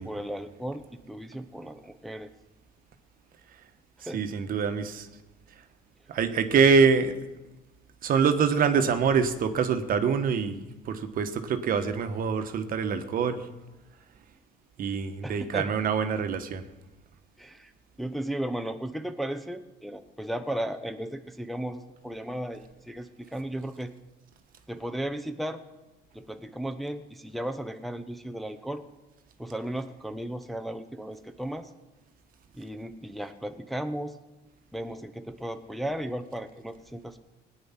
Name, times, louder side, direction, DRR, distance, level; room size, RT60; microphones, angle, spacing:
voice 1, 0.0-2.3 4.0-4.2 15.2-15.7 17.4-17.7 18.0-23.9 24.7-25.6 26.1-28.8 29.4-31.7 32.5-34.2 34.7-37.2, right 1 dB, ahead, 7 dB, 0.8 m, -35 dB
voice 2, 4.1-5.1 6.1-7.1 8.0-13.5 14.8-16.6, right 6 dB, 55° right, 8 dB, 1.3 m, -25 dB
18.0 x 9.5 x 5.9 m, 1.1 s
cardioid pair, 110°, 17 cm